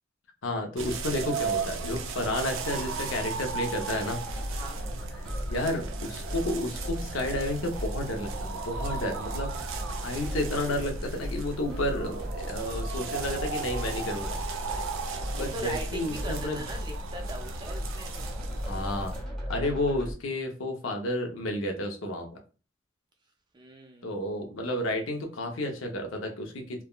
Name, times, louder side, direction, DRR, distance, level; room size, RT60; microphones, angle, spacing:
voice 1, 0.4-4.2 5.5-9.5 10.0-14.4 15.4-16.6 18.6-19.1 19.5-22.3 24.0-26.8, left 1 dB, 75° left, 3 dB, 0.7 m, -31 dB
sound 1, 0.8-19.2, right 3 dB, 75° right, 0.4 m, -35 dB
sound 2, 4.3-20.1, equal, ahead, 0.8 m, -38 dB
voice 2, 15.3-18.1 23.5-24.1, right 1 dB, 20° right, 3 dB, 0.5 m, -40 dB
3.4 x 2.2 x 2.3 m, 0.35 s
head